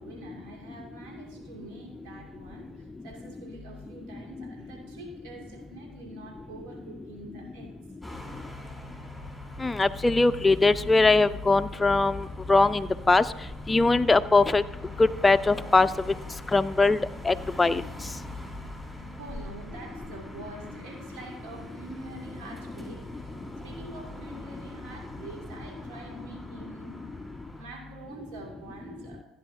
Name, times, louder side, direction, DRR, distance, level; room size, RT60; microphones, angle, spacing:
voice 1, 0.0-7.7 19.1-23.3 23.6-27.0 27.5-29.2, right 2 dB, 75° right, 0 dB, 2.8 m, -45 dB
sound 1, 8.0-27.7, left 1 dB, ahead, 3.3 m, -42 dB
voice 2, 9.6-13.2 13.7-14.6 15.0-15.9 16.5-17.0 17.2-17.8, left 3 dB, 15° left, 11 dB, 0.3 m, -21 dB
15.5 x 9.3 x 2.8 m, 1.1 s
hypercardioid pair, 65°, 0 cm